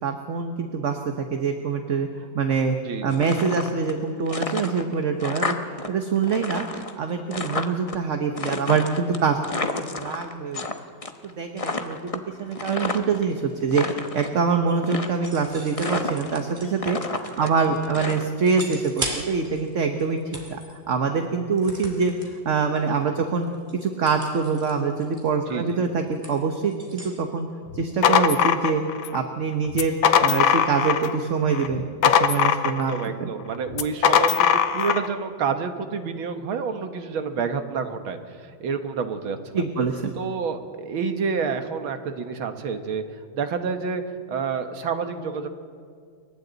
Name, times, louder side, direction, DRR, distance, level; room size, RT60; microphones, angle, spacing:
voice 1, 0.0-2.8 3.0-5.5 5.9-6.6 7.0-9.4 9.9-10.6 11.2-20.2 20.5-22.1 22.4-23.5 23.8-27.5 27.7-28.8 29.1-33.3 39.5-40.1, right 5 dB, 45° right, 5 dB, 1.2 m, -25 dB
voice 2, 2.9-3.2 17.4-17.5 25.5-25.8 32.6-39.6 40.2-43.0 43.3-44.0 44.3-45.5, right 5 dB, 85° right, 7 dB, 2.2 m, -29 dB
sound 1, 3.1-4.0 4.3-5.9 6.1-8.0 8.4-10.7 11.0-11.3 11.6-13.2 13.6-14.3 14.8-15.4 15.8-16.5 16.8-18.6, left 3 dB, 25° left, 0.7 m, -30 dB
sound 2, 15.0-17.8 18.4-19.7 20.0-20.7 21.6-22.3 22.8-23.0 23.3-27.2, right 1 dB, 25° right, 2.9 m, -38 dB
sound 3, 27.7-29.2 29.7-31.2 31.5-33.0 33.7-35.1, left 8 dB, 75° left, 1.7 m, -20 dB
29.0 x 23.5 x 4.0 m, 2.2 s
omnidirectional pair, 2.2 m